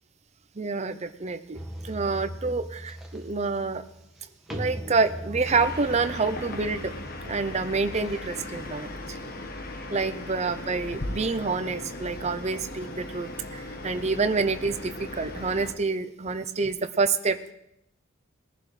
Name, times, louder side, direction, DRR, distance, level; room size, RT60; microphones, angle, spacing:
voice 1, 0.6-3.8 4.5-6.9 7.2-9.2 9.9-17.5, right 4 dB, 30° right, 10 dB, 0.6 m, -28 dB
sound 1, 1.5-8.5, equal, ahead, 1.5 m, -40 dB
sound 2, 5.4-15.7, left 2 dB, 45° left, 1.2 m, -38 dB
20.5 x 11.0 x 3.3 m, 0.80 s
head